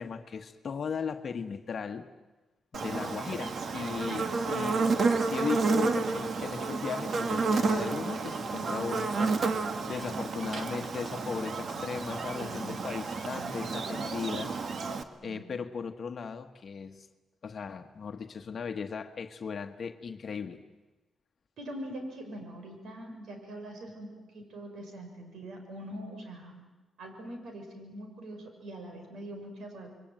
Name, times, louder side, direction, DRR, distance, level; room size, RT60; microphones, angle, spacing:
voice 1, 0.0-2.1 2.7-4.9 5.2-14.5 15.2-17.1 17.4-20.6, left 6 dB, 50° left, 6 dB, 1.3 m, -37 dB
Buzz, 2.7-15.0, right 4 dB, 55° right, 1.7 m, -31 dB
voice 2, 12.3-12.8 13.2-13.6 15.2-15.5 21.6-26.6 27.0-29.9, right 1 dB, 75° right, 5 dB, 6.5 m, -43 dB
28.5 x 22.5 x 9.1 m, 1.2 s
cardioid pair, 100°, 0 cm